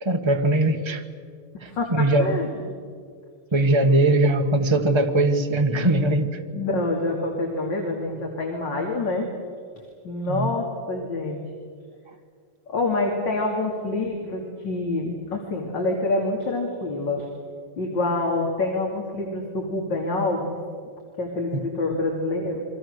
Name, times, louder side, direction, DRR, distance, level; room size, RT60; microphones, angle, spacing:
voice 1, 0.0-1.0 1.6-2.4 3.5-6.3 10.3-10.5 21.5-21.6, right 2 dB, 15° right, 4 dB, 1.3 m, -20 dB
voice 2, 1.7-2.7 3.9-4.0 6.0-6.1 6.5-9.3 10.0-11.4 12.7-17.3 17.8-20.6 21.2-22.7, left 2 dB, 55° left, 0 dB, 3.5 m, -27 dB
30.0 x 24.0 x 6.7 m, 2.1 s
omnidirectional pair, 2.4 m